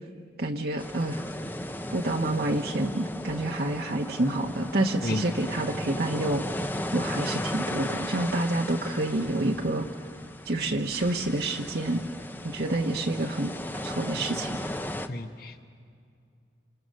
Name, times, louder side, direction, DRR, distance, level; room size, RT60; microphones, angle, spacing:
voice 1, 0.4-1.2 1.9-9.9 10.5-12.0 12.4-13.5 13.8-14.6, right 2 dB, 55° right, 1 dB, 1.2 m, -28 dB
sound 1, 0.8-15.1, left 1 dB, 10° left, 0.8 m, -36 dB
voice 2, 15.1-15.6, left 2 dB, 50° left, 4 dB, 1.4 m, -32 dB
29.0 x 27.5 x 6.4 m, 2.3 s
head